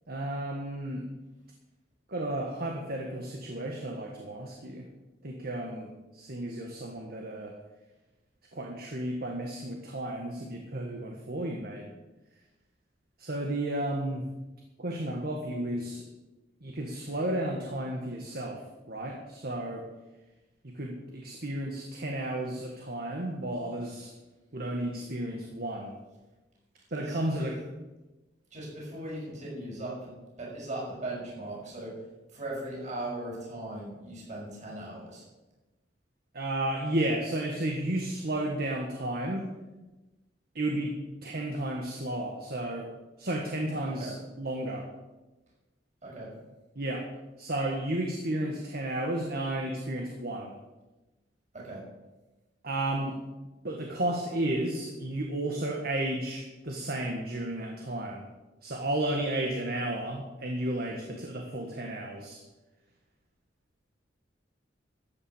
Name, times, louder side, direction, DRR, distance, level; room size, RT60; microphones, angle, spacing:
voice 1, 0.1-1.0 2.1-4.8 5.2-7.5 8.5-11.9 13.2-14.2 14.8-16.0 16.6-18.6 18.9-19.8 20.6-24.1 24.5-26.0 26.9-27.6 36.3-39.4 40.5-40.9 41.2-42.9 43.2-44.8 46.7-47.0 47.4-50.5 52.6-53.2 53.6-58.2 58.6-62.4, right 1 dB, 60° right, 1 dB, 1.6 m, -33 dB
voice 2, 26.9-27.5 28.5-30.1 30.4-31.9 32.3-35.2 43.9-44.1 46.0-46.3 51.5-51.8, right 1 dB, 40° right, -4 dB, 6.2 m, -38 dB
13.5 x 8.9 x 7.3 m, 1.1 s
head